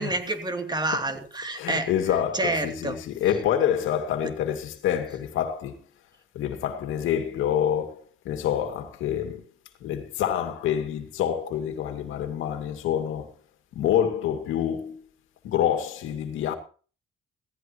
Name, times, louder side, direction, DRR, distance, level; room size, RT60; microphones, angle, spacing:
voice 1, 0.0-1.9 2.3-3.0, right 2 dB, 20° right, 2.8 m, -28 dB
voice 2, 1.5-5.8 6.3-9.4 9.8-13.3 13.7-15.0 15.4-16.5, left 10 dB, 90° left, 2.3 m, -27 dB
16.5 x 15.5 x 3.0 m
cardioid pair, 90°, 20 cm